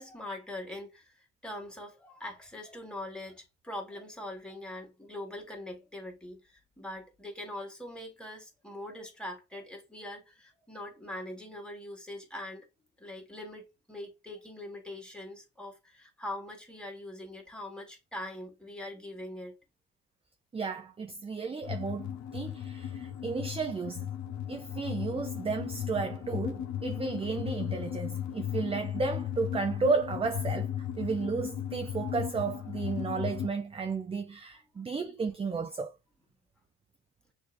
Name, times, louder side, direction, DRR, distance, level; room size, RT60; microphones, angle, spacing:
voice 1, 0.0-12.7 13.0-19.5, left 1 dB, 5° left, 1.9 m, -42 dB
voice 2, 20.5-24.1 24.5-35.9, right 4 dB, 20° right, 0.4 m, -33 dB
sound 1, 21.6-33.5, left 10 dB, 65° left, 0.8 m, -36 dB
6.4 x 2.7 x 2.6 m
cardioid pair, 90°, 30 cm